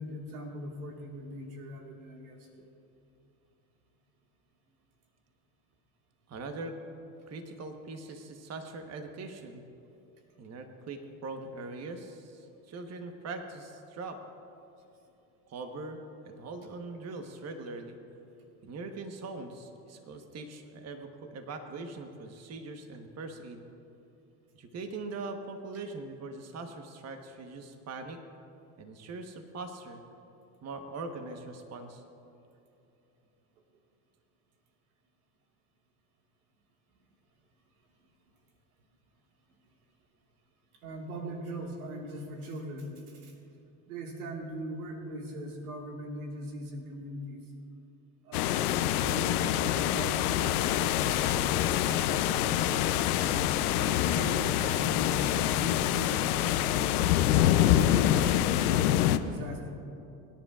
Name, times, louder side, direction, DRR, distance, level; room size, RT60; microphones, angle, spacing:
voice 1, 0.0-2.7 40.8-43.3 43.9-47.4 48.2-53.0 53.8-58.7 59.2-59.7, equal, 90° right, 1 dB, 1.9 m, -41 dB
voice 2, 6.3-6.7 7.3-9.6 10.4-14.2 15.5-18.0 18.6-23.6 24.5-28.2 28.8-30.0 30.6-32.0, right 3 dB, 35° right, 6 dB, 1.2 m, -41 dB
sound 1, 48.3-59.2, left 12 dB, 90° left, 0.7 m, -26 dB
23.5 x 10.0 x 2.4 m, 2.8 s
supercardioid pair, 85°, 43 cm